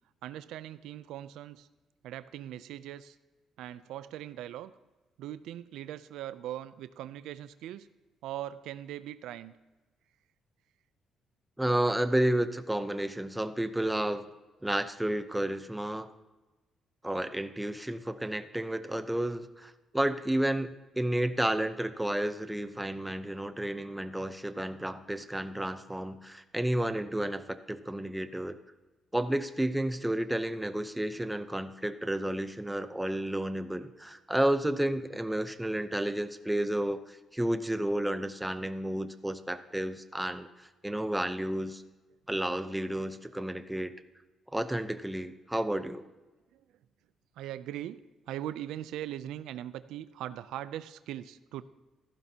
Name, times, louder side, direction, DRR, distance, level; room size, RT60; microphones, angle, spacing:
voice 1, 0.2-1.7 2.0-3.2 3.6-4.7 5.2-7.9 8.2-9.5 46.5-46.6 47.4-51.6, right 12 dB, 90° right, 14 dB, 0.4 m, -40 dB
voice 2, 11.6-14.3 14.6-16.1 17.0-28.6 29.1-41.8 42.3-43.9 44.5-46.0, right 1 dB, 5° right, 10 dB, 0.7 m, -31 dB
14.5 x 11.5 x 2.8 m, 1.2 s
cardioid pair, 90°, 0 cm